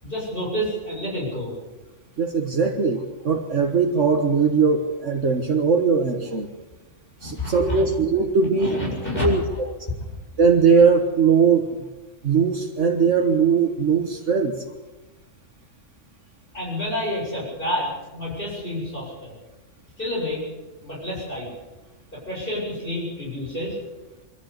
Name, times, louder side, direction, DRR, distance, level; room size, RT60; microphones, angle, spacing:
voice 1, 0.0-1.5 7.2-7.8 8.6-9.6 16.5-19.3 20.0-20.4 20.8-21.5 22.1-23.7, left 1 dB, 40° left, -5 dB, 8.1 m, -29 dB
voice 2, 2.2-6.5 7.2-8.8 9.2-9.4 10.4-11.8 12.2-14.5, right 5 dB, 65° right, 3 dB, 1.8 m, -20 dB
24.0 x 14.5 x 8.4 m, 1.1 s
omnidirectional pair, 1.3 m